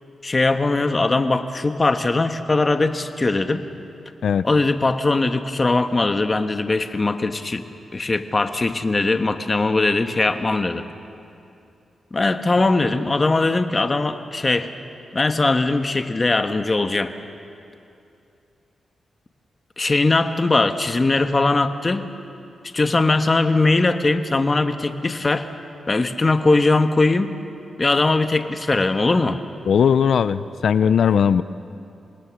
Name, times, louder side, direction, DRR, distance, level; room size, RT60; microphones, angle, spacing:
voice 1, 0.2-3.6 4.4-7.7 7.9-10.8 12.1-14.7 15.1-17.1 19.8-22.1 22.7-25.5 25.9-27.3 27.8-29.4, left 3 dB, 30° left, 8 dB, 1.2 m, -20 dB
voice 2, 29.7-31.4, left 7 dB, 75° left, 15 dB, 0.5 m, -18 dB
26.5 x 20.0 x 6.3 m, 2.6 s
cardioid pair, 80°, 0 cm